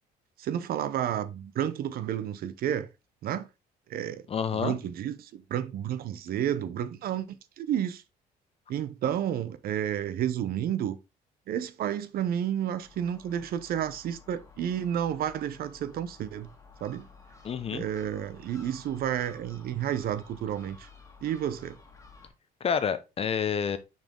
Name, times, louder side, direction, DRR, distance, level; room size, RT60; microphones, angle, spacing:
voice 1, 0.4-2.9 3.2-3.5 3.9-4.2 4.5-8.0 8.7-11.0 11.5-16.5 16.8-17.1 17.7-20.9 21.2-21.8, right 10 dB, 60° right, 0.7 m, -31 dB
voice 2, 4.3-4.8 17.4-17.8 22.6-23.8, left 7 dB, 35° left, 0.7 m, -28 dB
Gull seagull, 12.8-22.3, left 4 dB, 15° left, 1.7 m, -53 dB
6.1 x 4.3 x 3.6 m
cardioid pair, 110°, 17 cm